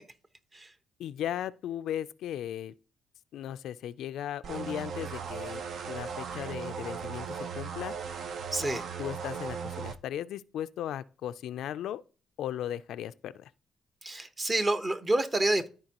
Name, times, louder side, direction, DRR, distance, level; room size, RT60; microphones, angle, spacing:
voice 1, 1.0-2.7 3.3-7.9 8.6-12.0 12.4-13.5, left 11 dB, 80° left, 0.3 m, -37 dB
sound 1, 4.4-10.0, right 6 dB, 65° right, 0.7 m, -37 dB
voice 2, 8.5-8.8 14.0-15.7, right 2 dB, 25° right, 1.0 m, -28 dB
13.5 x 4.5 x 2.9 m
cardioid pair, 90°, 0 cm